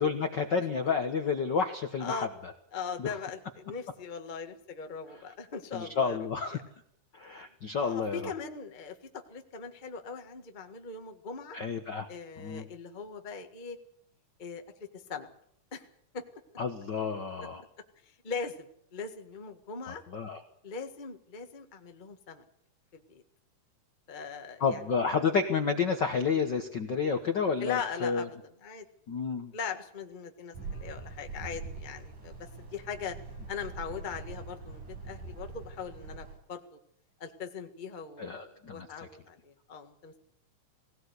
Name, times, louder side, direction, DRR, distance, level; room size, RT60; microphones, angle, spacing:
voice 1, 0.0-2.5 3.0-3.1 5.7-6.6 7.1-8.3 11.5-12.1 12.4-12.6 16.6-17.6 19.9-20.4 24.6-28.3 29.1-29.5 38.2-38.9, left 5 dB, 55° left, 6 dB, 1.2 m, -30 dB
voice 2, 2.7-6.2 6.5-6.6 7.8-11.6 12.1-13.8 14.4-15.3 15.7-15.9 16.1-16.2 18.2-20.0 20.6-22.4 22.9-23.2 24.1-24.8 27.6-28.3 28.6-28.8 29.5-33.2 33.5-36.6 37.2-40.2, left 5 dB, 25° left, 5 dB, 1.0 m, -40 dB
sound 1, 30.5-36.4, right 4 dB, 85° right, 7.4 m, -43 dB
19.0 x 17.5 x 8.1 m, 0.70 s
omnidirectional pair, 3.6 m